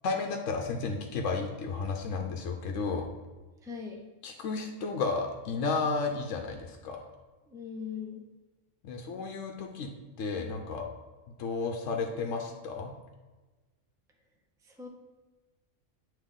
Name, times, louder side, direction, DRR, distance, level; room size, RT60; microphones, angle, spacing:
voice 1, 0.0-3.1 4.2-7.0 8.8-9.9 10.2-10.8 11.4-12.9, left 4 dB, 75° left, 2 dB, 1.0 m, -32 dB
voice 2, 3.6-4.0 7.5-8.2 14.6-14.9, left 6 dB, 5° right, 0 dB, 0.5 m, -40 dB
8.4 x 3.0 x 3.7 m, 1.2 s
omnidirectional pair, 1.3 m